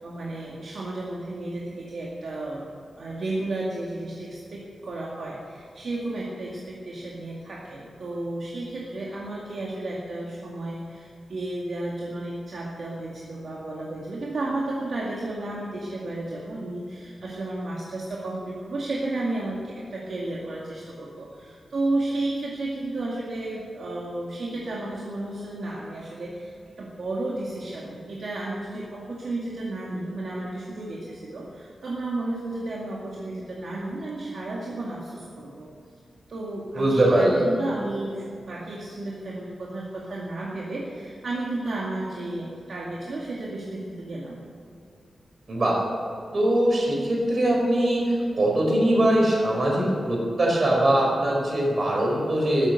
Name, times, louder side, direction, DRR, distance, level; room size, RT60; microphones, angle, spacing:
voice 1, 0.0-2.6 3.0-26.5 26.8-35.7 36.3-44.4, right 2 dB, 60° right, -4 dB, 2.2 m, -32 dB
voice 2, 36.7-37.5 45.5-45.8 46.3-52.7, right 1 dB, 40° right, -2 dB, 4.9 m, -22 dB
14.0 x 13.0 x 7.9 m, 2.5 s
wide cardioid pair, 170°, 0 cm